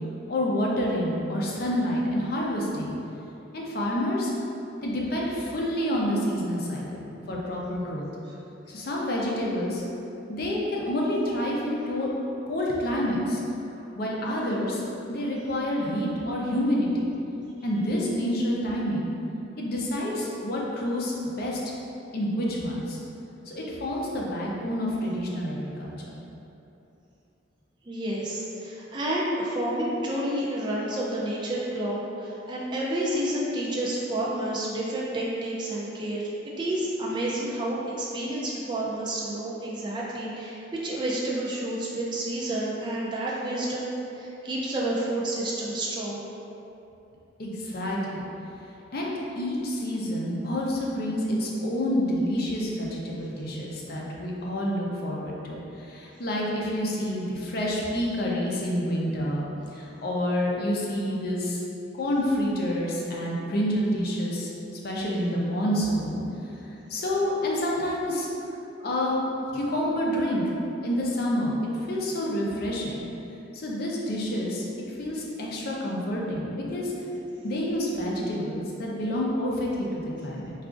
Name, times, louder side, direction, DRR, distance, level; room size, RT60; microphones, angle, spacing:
voice 1, 0.3-2.9 3.5-4.3 4.8-8.0 8.7-9.8 10.3-12.1 12.5-13.4 13.9-14.8 15.1-17.1 17.6-19.1 19.6-21.6 22.1-23.0 23.5-26.1 47.4-48.2 48.9-49.1 49.4-61.6 62.0-64.5 64.8-66.2 66.6-68.3 68.8-69.2 69.5-70.5 70.8-71.6 71.9-73.0 73.5-74.7 75.0-76.9 77.4-80.5, equal, 50° left, -3 dB, 0.5 m, -28 dB
voice 2, 27.8-46.3, right 1 dB, 25° right, -5 dB, 0.4 m, -30 dB
4.7 x 2.4 x 2.4 m, 2.9 s
head